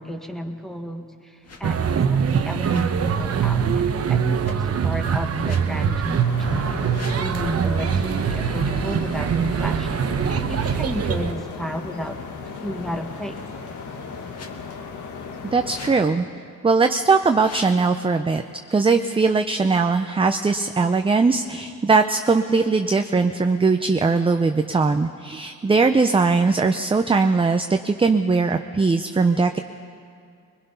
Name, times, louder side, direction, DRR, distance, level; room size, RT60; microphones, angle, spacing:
voice 1, 0.0-2.0 2.2-12.2 12.6-13.5, equal, ahead, 4 dB, 1.5 m, -33 dB
sound 1, 1.4-1.7 2.6-3.0 4.4-4.5 5.4-5.7 6.8-7.3 9.2-9.4 10.5-10.8 12.6-13.4 14.3-14.5 15.6-16.0 17.2-17.8, left 4 dB, 55° left, 1.7 m, -44 dB
sound 2, 1.6-11.3, right 7 dB, 50° right, 1.0 m, -23 dB
sound 3, 6.2-16.1, left 5 dB, 70° left, 1.8 m, -36 dB
voice 2, 15.5-16.3 16.6-18.4 18.7-29.6, right 4 dB, 15° right, 7 dB, 0.6 m, -20 dB
22.5 x 21.0 x 5.6 m, 2.4 s
cardioid pair, 105°, 31 cm